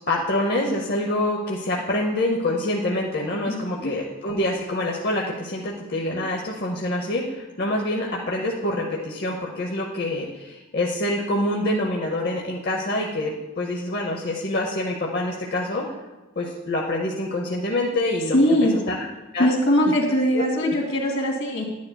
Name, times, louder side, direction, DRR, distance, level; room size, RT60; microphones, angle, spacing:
voice 1, 0.1-15.9 16.4-18.6 18.9-19.0 19.3-19.5 20.3-20.7, left 1 dB, 50° left, -1 dB, 0.8 m, -26 dB
voice 2, 3.5-3.9 18.3-18.8 19.4-21.6, equal, 75° left, -1 dB, 2.0 m, -21 dB
11.0 x 9.4 x 2.2 m, 1.1 s
head